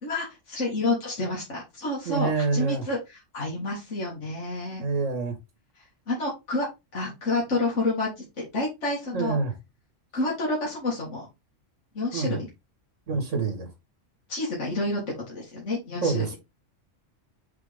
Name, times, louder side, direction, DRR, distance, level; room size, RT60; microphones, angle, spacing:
voice 1, 0.0-4.8 5.8-6.7 6.9-9.4 10.1-11.3 11.9-12.5 14.3-16.3, left 2 dB, 70° left, 2.4 m, -29 dB
voice 2, 2.1-2.8 4.8-5.4 9.1-9.5 12.1-12.4 13.1-13.7 16.0-16.4, right 4 dB, 85° right, 2.1 m, -26 dB
6.0 x 4.7 x 3.5 m
omnidirectional pair, 1.3 m